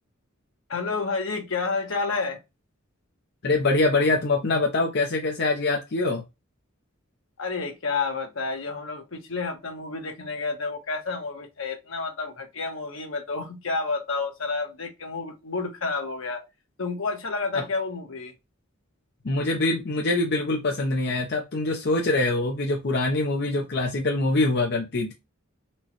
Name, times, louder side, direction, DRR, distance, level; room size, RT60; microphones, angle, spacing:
voice 1, 0.7-2.4 7.4-16.4 16.8-18.3, left 4 dB, 75° left, 1.0 m, -30 dB
voice 2, 3.4-6.2 17.5-17.6 19.2-25.1, left 2 dB, 55° left, 0.6 m, -24 dB
4.3 x 2.2 x 2.9 m
head